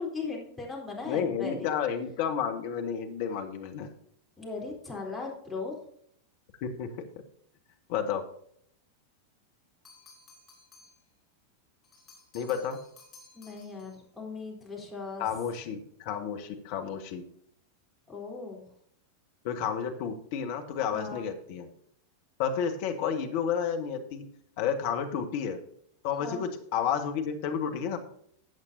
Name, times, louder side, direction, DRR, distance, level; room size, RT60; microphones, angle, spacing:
voice 1, 0.0-1.7 4.4-5.8 13.3-15.2 18.1-18.6 20.9-21.2 26.2-26.5, left 4 dB, 5° left, -3 dB, 3.8 m, -38 dB
voice 2, 1.0-3.9 6.8-6.9 7.9-8.2 12.3-12.8 15.2-17.2 19.4-21.7 22.4-24.2 24.6-25.6 26.0-28.0, left 7 dB, 50° left, 5 dB, 1.6 m, -31 dB
sound 1, 9.8-11.1 11.8-14.0, left 3 dB, 20° left, 3.9 m, -56 dB
14.0 x 8.2 x 2.7 m, 0.66 s
figure-of-eight pair, 90°, 0 cm